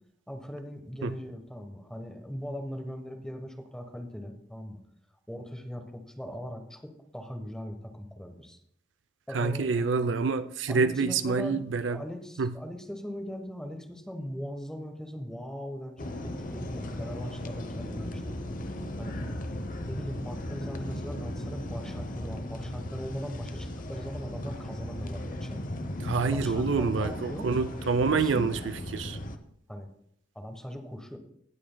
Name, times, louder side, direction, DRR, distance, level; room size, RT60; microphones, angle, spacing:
voice 1, 0.3-4.8 5.3-8.6 9.3-10.1 10.7-18.2 19.0-19.2 19.9-25.6 26.3-27.5 28.1-28.6 29.7-29.9 30.3-31.2, equal, 5° left, 1.1 m, -39 dB
voice 2, 9.3-12.0 12.4-12.5 26.0-28.6 28.9-29.2, right 4 dB, 80° right, 0.5 m, -27 dB
sound 1, 16.0-29.4, left 1 dB, 45° left, 0.8 m, -37 dB
17.5 x 7.6 x 2.2 m
head